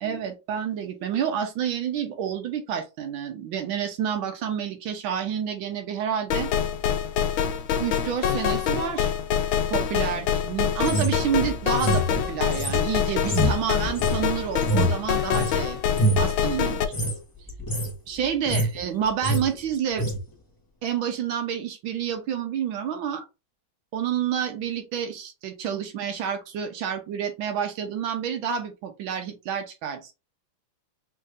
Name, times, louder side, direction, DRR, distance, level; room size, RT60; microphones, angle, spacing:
voice 1, 0.0-6.5 7.8-9.1 9.7-15.8 16.2-16.8 18.1-20.1 20.8-23.2 23.9-30.1, right 8 dB, 80° right, 5 dB, 1.6 m, -29 dB
sound 1, 6.3-16.9, left 8 dB, 80° left, 1.4 m, -25 dB
sound 2, 10.8-15.6 15.9-16.3 16.8-17.1 17.5-17.9 18.2-18.8 19.0-19.4 20.0-20.2, right 1 dB, 25° left, 0.4 m, -26 dB
5.4 x 3.1 x 2.5 m, 0.27 s
omnidirectional pair, 2.2 m